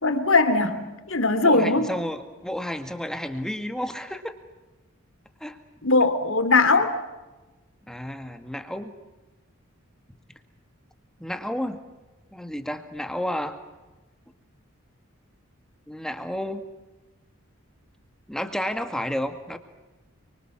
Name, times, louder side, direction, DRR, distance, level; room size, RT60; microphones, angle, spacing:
voice 1, 0.0-1.9 5.8-6.9, left 3 dB, 70° left, 10 dB, 3.1 m, -20 dB
voice 2, 1.4-4.3 5.4-5.6 7.9-8.9 11.2-11.8 12.3-13.6 15.9-16.6 18.3-19.6, equal, 5° left, 8 dB, 2.0 m, -31 dB
29.5 x 25.0 x 7.4 m, 1.1 s
head